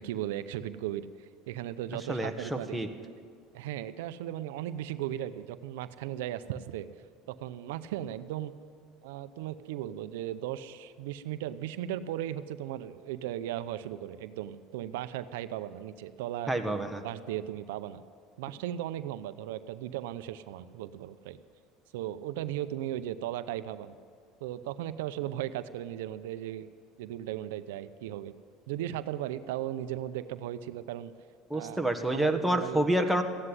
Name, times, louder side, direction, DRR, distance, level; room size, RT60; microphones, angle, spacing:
voice 1, 0.0-2.8 3.5-6.9 7.3-8.5 9.0-16.6 17.0-18.0 18.4-21.4 21.9-23.9 24.4-26.7 27.0-28.3 28.7-31.1 31.5-31.8 32.1-32.8, right 12 dB, 90° right, 12 dB, 0.6 m, -36 dB
voice 2, 2.1-2.9 16.5-17.0 31.5-33.2, right 1 dB, ahead, 4 dB, 1.4 m, -28 dB
15.0 x 9.8 x 9.7 m, 2.2 s
supercardioid pair, 115°, 0 cm